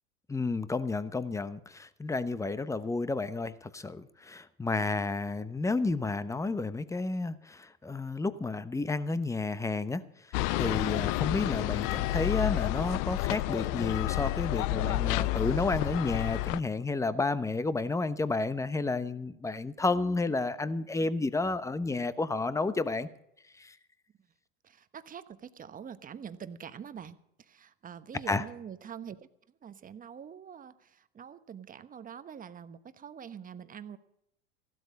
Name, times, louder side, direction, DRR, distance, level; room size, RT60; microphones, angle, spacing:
voice 1, 0.3-10.0 10.5-23.1 23.6-23.7 28.3-28.4, left 3 dB, 10° left, 14 dB, 0.9 m, -31 dB
sound 1, 10.3-16.6, left 17 dB, 60° left, 0.6 m, -30 dB
voice 2, 24.6-29.3 29.6-34.0, right 8 dB, 25° right, 12 dB, 1.1 m, -45 dB
16.0 x 12.5 x 5.3 m, 0.77 s
hypercardioid pair, 95°, 32 cm